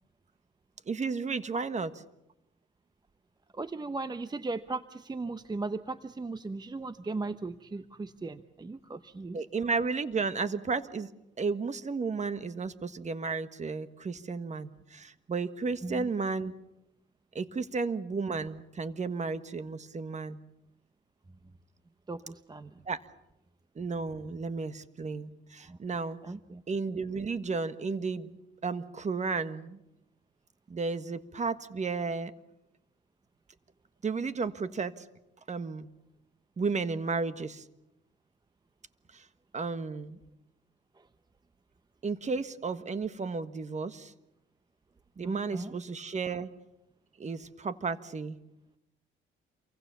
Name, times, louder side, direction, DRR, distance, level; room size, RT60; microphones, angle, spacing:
voice 1, 0.9-1.9 9.3-11.1 11.4-16.5 17.3-20.4 22.9-23.0 23.7-26.2 26.7-28.4 28.6-29.8 30.7-32.3 34.0-35.0 35.5-35.9 36.6-37.6 39.1-39.2 39.5-40.2 42.0-44.1 45.2-46.5 47.2-48.4, right 4 dB, 35° right, 12 dB, 1.6 m, -33 dB
voice 2, 3.5-9.4 15.8-16.1 22.1-22.7 25.6-25.8 26.2-26.6 45.2-45.7, right 3 dB, 20° right, 12 dB, 0.9 m, -37 dB
28.0 x 24.0 x 7.0 m, 0.86 s
cardioid pair, 90°, 20 cm